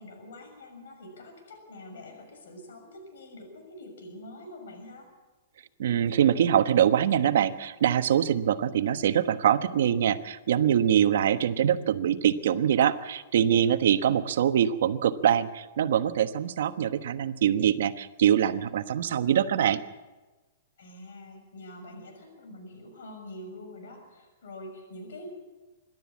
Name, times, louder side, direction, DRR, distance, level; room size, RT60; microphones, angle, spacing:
voice 1, 0.0-5.1 20.8-25.3, left 1 dB, 90° left, 5 dB, 6.5 m, -45 dB
voice 2, 5.8-19.8, right 9 dB, 65° right, 10 dB, 1.2 m, -24 dB
25.5 x 12.5 x 8.5 m, 1.2 s
hypercardioid pair, 170°, 0 cm